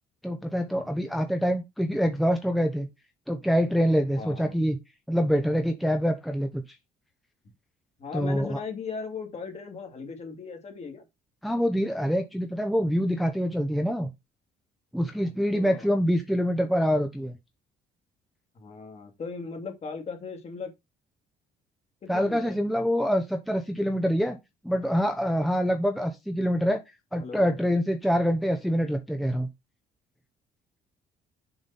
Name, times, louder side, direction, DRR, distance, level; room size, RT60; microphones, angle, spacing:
voice 1, 0.2-2.9 3.3-4.8 5.1-6.6 8.1-8.6 11.4-14.1 14.9-17.4 22.1-24.4 24.6-26.8 27.1-29.5, equal, ahead, 0.9 m, -25 dB
voice 2, 4.2-4.6 8.0-11.0 15.2-15.9 18.6-20.7 22.0-22.6 27.2-27.5, left 5 dB, 40° left, 2.4 m, -38 dB
7.1 x 5.1 x 4.2 m
cardioid pair, 110°, 17 cm